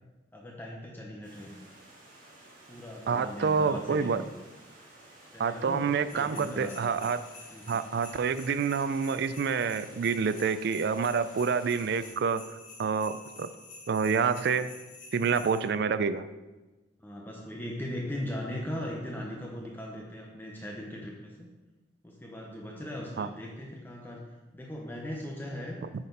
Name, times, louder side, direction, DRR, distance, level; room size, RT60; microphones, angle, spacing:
voice 1, 0.3-1.7 2.7-4.3 5.3-6.9 7.5-7.8 17.0-21.5 22.0-24.2 24.5-25.8, left 1 dB, 10° left, -2 dB, 0.8 m, -39 dB
Stream, 1.2-12.1, right 1 dB, 45° right, 2.1 m, -54 dB
voice 2, 3.1-4.2 5.4-7.2 7.7-12.4 12.8-13.5 13.9-14.7 15.1-16.3 23.2-23.3, right 5 dB, 60° right, 13 dB, 0.4 m, -28 dB
sound 1, 6.1-15.6, left 3 dB, 50° left, 2.2 m, -49 dB
8.8 x 4.2 x 5.3 m, 1.2 s
head